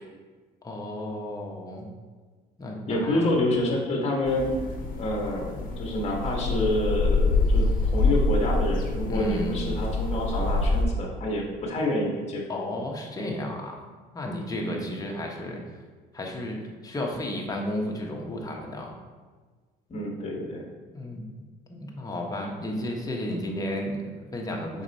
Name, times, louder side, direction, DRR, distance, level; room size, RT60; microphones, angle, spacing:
voice 1, 0.6-1.9 2.6-3.3 9.1-9.7 12.5-13.8 14.1-15.6 16.1-18.9 20.9-21.3 21.7-24.8, left 1 dB, 20° left, 0 dB, 1.1 m, -33 dB
voice 2, 2.9-4.5 5.0-12.4 14.6-14.9 19.9-20.7, left 1 dB, 40° left, -1 dB, 1.6 m, -28 dB
sound 1, 4.3-10.9, left 3 dB, 55° left, 0.9 m, -26 dB
5.9 x 4.4 x 4.1 m, 1.4 s
cardioid pair, 110°, 17 cm